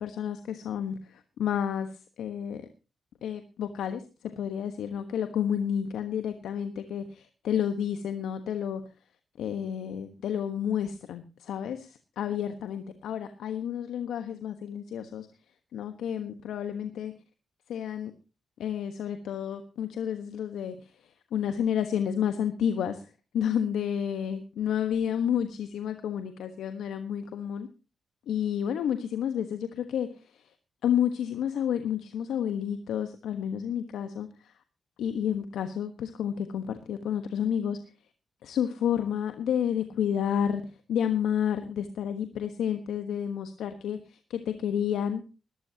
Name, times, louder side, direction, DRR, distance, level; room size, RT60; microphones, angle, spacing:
voice 1, 0.0-2.6 3.2-4.0 4.4-8.8 9.4-15.3 15.7-17.1 17.7-18.1 18.6-27.7 28.3-30.5 30.8-34.5 35.0-37.8 38.4-45.2, left 9 dB, 80° left, 8 dB, 1.2 m, -30 dB
19.5 x 13.5 x 2.9 m, 0.33 s
supercardioid pair, 45°, 0 cm